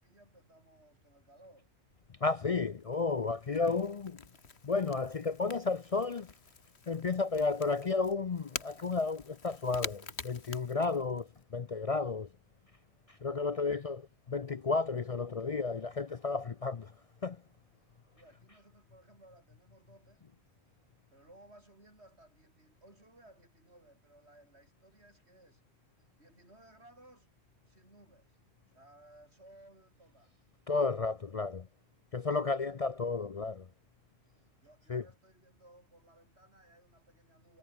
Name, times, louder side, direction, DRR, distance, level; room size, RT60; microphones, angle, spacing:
voice 1, 0.0-1.7 13.4-13.7 18.2-20.2 21.1-25.6 26.2-27.3 27.7-28.4 28.7-30.4 34.3-37.6, right 1 dB, 80° right, 8.2 m, -60 dB
Crackle / Crack, 1.9-11.4, left 5 dB, 75° left, 2.0 m, -48 dB
voice 2, 2.2-4.2 4.6-6.3 6.9-12.3 13.2-14.0 14.3-16.9 17.2-17.4 30.7-31.7 32.1-33.6 34.9-35.0, left 4 dB, 40° left, 0.6 m, -32 dB
omnidirectional pair, 1.1 m